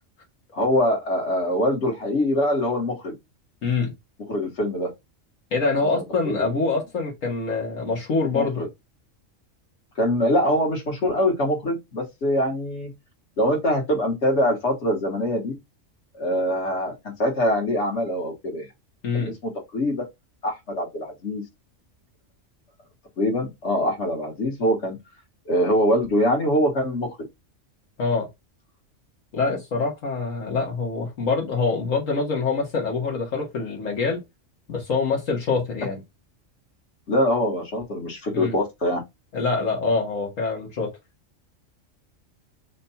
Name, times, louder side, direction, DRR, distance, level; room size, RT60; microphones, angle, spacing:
voice 1, 0.5-3.1 4.2-4.9 6.2-6.7 8.3-8.7 10.0-12.9 13.4-15.5 16.1-18.7 19.1-20.0 20.4-21.4 23.2-25.0 25.5-27.2 37.1-39.0, equal, 60° left, 1.8 m, -23 dB
voice 2, 5.5-8.7 19.0-19.3 28.0-28.2 29.3-34.2 34.7-36.0 38.3-38.5 39.3-40.9, left 4 dB, 80° left, 1.7 m, -25 dB
5.0 x 2.3 x 4.1 m
omnidirectional pair, 1.3 m